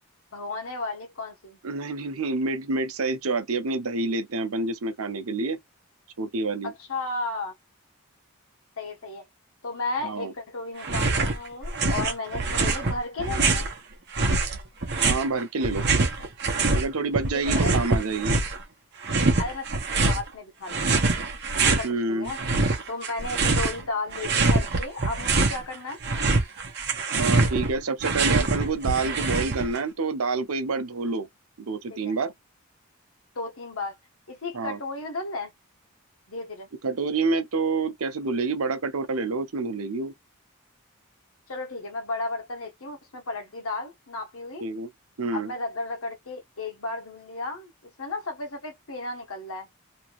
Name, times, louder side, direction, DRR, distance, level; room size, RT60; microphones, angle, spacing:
voice 1, 0.3-1.6 6.6-7.5 8.8-9.3 9.6-13.7 17.3-17.8 19.4-19.7 20.0-21.0 21.6-22.4 22.9-26.0 32.0-32.1 33.3-34.0 34.3-35.5 36.3-36.7 41.5-44.7 45.3-49.7, left 3 dB, 75° left, 1.1 m, -34 dB
voice 2, 1.6-5.6 6.2-6.7 10.0-10.3 15.0-15.8 16.7-18.4 21.8-22.3 27.1-31.3 31.6-32.3 34.5-34.8 36.8-40.1 44.6-44.9 45.2-45.5, right 3 dB, 80° right, 0.7 m, -28 dB
sound 1, 10.8-11.4 11.6-13.7 14.2-16.9 17.1-18.6 19.0-20.2 20.7-21.9 22.3-23.8 24.1-25.6 25.9-29.8, right 3 dB, 50° right, 0.9 m, -24 dB
3.0 x 2.5 x 3.0 m
head